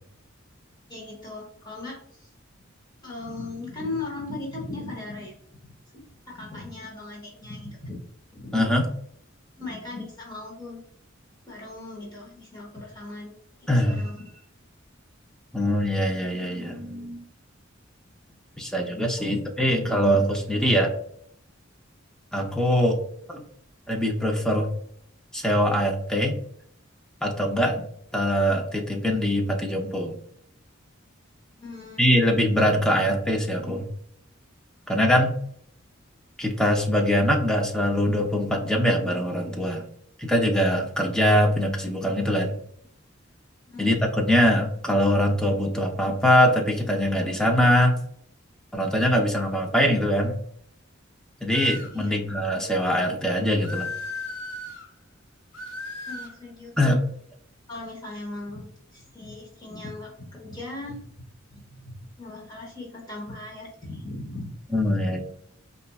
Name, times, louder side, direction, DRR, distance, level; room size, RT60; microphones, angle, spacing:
voice 1, 0.9-2.3 3.0-5.3 5.9-8.0 8.3-8.5 9.6-10.8 11.5-13.3 13.6-14.4 19.2-19.4 31.6-32.4 33.0-33.1 43.7-43.9 51.9-52.2 56.1-56.7 57.7-61.2 61.5-64.5, left 2 dB, 20° left, -4 dB, 0.9 m, -38 dB
voice 2, 8.5-8.9 13.7-14.0 15.5-17.2 18.6-20.9 22.3-23.0 23.3-23.4 23.9-24.7 25.3-26.4 27.2-27.9 28.1-30.2 32.0-33.9 34.9-35.4 36.4-39.8 40.2-42.6 43.8-48.0 48.7-50.3 51.4-53.9 56.8-57.0 64.7-65.2, equal, 5° left, 0 dB, 0.5 m, -22 dB
sound 1, 51.5-52.0 53.6-54.9 55.5-56.4, left 3 dB, 85° left, 1.1 m, -35 dB
4.2 x 2.5 x 2.3 m, 0.65 s
head